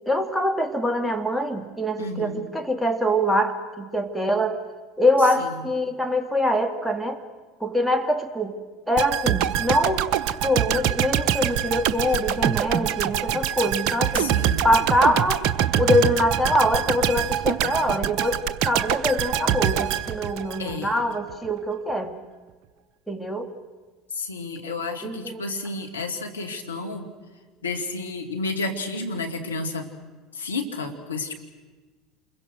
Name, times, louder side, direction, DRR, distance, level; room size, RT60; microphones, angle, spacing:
voice 1, 0.1-4.6 5.0-7.2 7.6-8.5 8.9-10.1 10.4-14.3 14.6-15.4 15.8-22.1 23.1-23.5 25.0-25.4, left 1 dB, ahead, 5 dB, 2.2 m, -24 dB
voice 2, 2.0-2.4 5.4-5.7 14.1-14.7 20.6-21.0 24.1-27.1 27.6-30.0 30.3-31.3, left 3 dB, 90° left, 3 dB, 2.0 m, -31 dB
sound 1, 9.0-21.0 21.3-21.5, right 10 dB, 55° right, 1.0 m, -24 dB
28.5 x 22.0 x 6.3 m, 1.4 s
hypercardioid pair, 70°, 0 cm